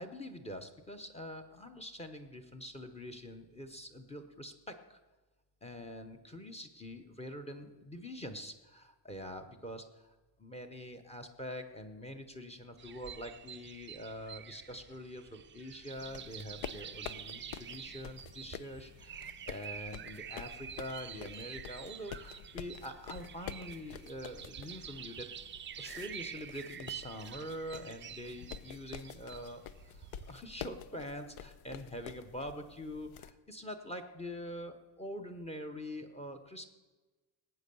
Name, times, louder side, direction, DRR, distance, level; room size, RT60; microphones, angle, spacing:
voice 1, 0.0-5.0 5.6-10.1 10.4-25.3 25.8-36.7, equal, 15° left, 7 dB, 0.7 m, -45 dB
sound 1, 12.8-30.4, right 9 dB, 25° right, 0.4 m, -48 dB
sound 2, 15.9-33.3, left 9 dB, 90° left, 0.8 m, -49 dB
18.5 x 8.5 x 6.8 m, 1.2 s
cardioid pair, 170°, 47 cm